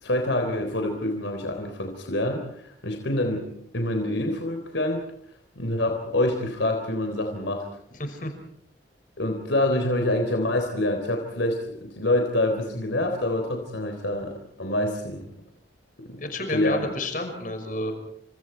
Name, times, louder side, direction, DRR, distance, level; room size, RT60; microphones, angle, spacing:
voice 1, 0.0-3.5 3.7-5.0 5.6-7.7 9.2-15.3 16.0-16.2 16.5-16.9, left 1 dB, 85° left, 4 dB, 3.7 m, -26 dB
voice 2, 8.0-8.3 16.2-17.9, left 1 dB, 45° left, 6 dB, 5.7 m, -30 dB
30.0 x 27.0 x 4.6 m, 0.68 s
head